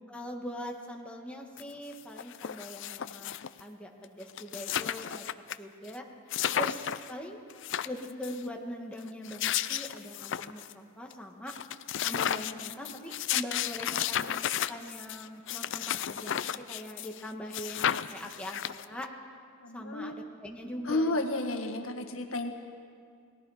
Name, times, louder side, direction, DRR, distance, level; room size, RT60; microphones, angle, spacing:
voice 1, 0.1-5.2 5.6-6.0 6.5-7.4 7.8-11.5 12.0-19.1 19.7-21.2, equal, 5° left, 0 dB, 1.7 m, -42 dB
sound 1, 1.6-1.7 1.9-3.6 4.0-4.1 4.3-5.6 5.9-6.0 6.3-7.1 7.5-8.4 9.1-10.7 11.1-11.2 11.5-17.2 17.5-19.0, left 10 dB, 65° left, 0.5 m, -33 dB
voice 2, 19.6-20.1 20.9-22.5, left 2 dB, 90° left, 5 dB, 1.7 m, -31 dB
29.5 x 19.5 x 5.0 m, 2.3 s
head